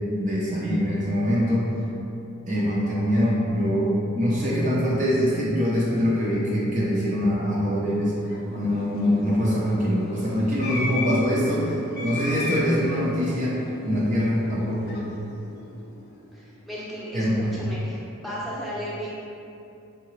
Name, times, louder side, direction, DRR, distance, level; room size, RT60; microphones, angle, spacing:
voice 1, 0.1-1.7 2.5-8.2 8.5-13.6 13.8-15.0 17.1-17.6, equal, 35° right, -6 dB, 0.5 m, -23 dB
sound 1, 7.9-16.4, left 2 dB, 45° left, 0.4 m, -36 dB
voice 2, 16.3-19.1, equal, ahead, -9 dB, 0.8 m, -35 dB
4.7 x 3.3 x 3.1 m, 2.7 s
head